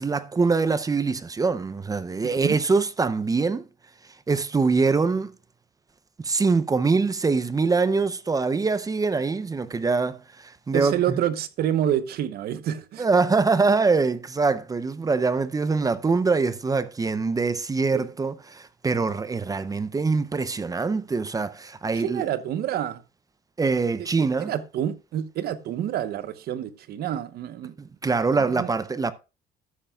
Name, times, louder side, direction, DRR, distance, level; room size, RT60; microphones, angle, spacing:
voice 1, 0.0-3.6 4.3-5.3 6.2-11.2 13.0-22.2 23.6-24.5 27.8-29.1, right 4 dB, 20° right, 0.6 m, -24 dB
voice 2, 2.2-2.6 10.7-13.1 17.9-18.0 21.9-23.0 24.5-27.8 28.5-28.7, right 10 dB, 65° right, 1.0 m, -28 dB
13.0 x 7.9 x 2.3 m
cardioid pair, 110°, 17 cm